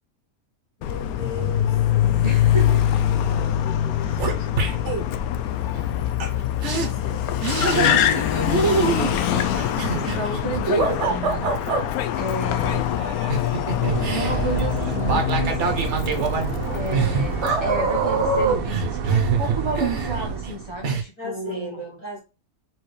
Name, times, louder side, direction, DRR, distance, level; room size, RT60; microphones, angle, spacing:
Car, 0.8-17.6, left 10 dB, 75° left, 1.0 m, -24 dB
voice 1, 0.8-1.9 3.2-5.0 6.7-8.1 11.8-12.1 16.5-17.2 21.2-22.2, left 1 dB, 25° left, 2.3 m, -38 dB
voice 2, 2.2-2.8 4.0-4.1 7.7-11.9 12.2-13.1 14.2-15.6 16.7-21.8, right 2 dB, 20° right, 0.9 m, -32 dB
sound 1, 3.3-3.5 3.8-5.0 6.2-6.3 6.6-6.9 7.4-8.2 8.5-11.8 13.0-20.5 20.8-21.0, right 4 dB, 55° right, 1.1 m, -24 dB
sound 2, 13.8-21.0, right 6 dB, 75° right, 1.2 m, -29 dB
4.6 x 3.6 x 3.1 m
omnidirectional pair, 1.6 m